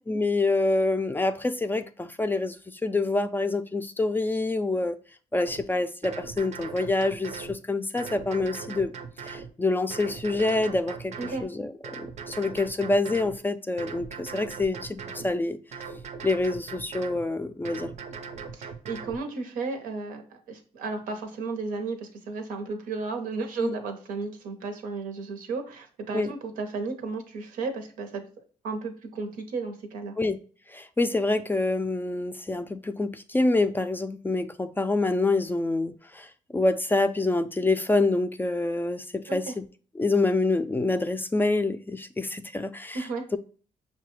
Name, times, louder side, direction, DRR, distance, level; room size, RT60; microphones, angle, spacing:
voice 1, 0.1-2.6 2.8-5.0 5.3-8.9 9.2-11.1 11.4-15.6 16.2-17.9 23.6-23.8 26.1-26.3 30.2-30.4 30.7-39.6 40.0-43.1, left 2 dB, 15° left, 0.3 m, -26 dB
sound 1, 5.5-5.6 6.0-7.6 8.0-9.5 9.9-11.4 11.8-13.4 13.8-15.3 15.7-17.2 17.6-19.2, right 5 dB, 55° right, 0.5 m, -39 dB
voice 2, 18.5-28.2 28.6-30.1 39.3-39.5 42.9-43.2, right 4 dB, 90° right, 0.7 m, -34 dB
5.5 x 2.2 x 3.0 m
cardioid pair, 80°, 14 cm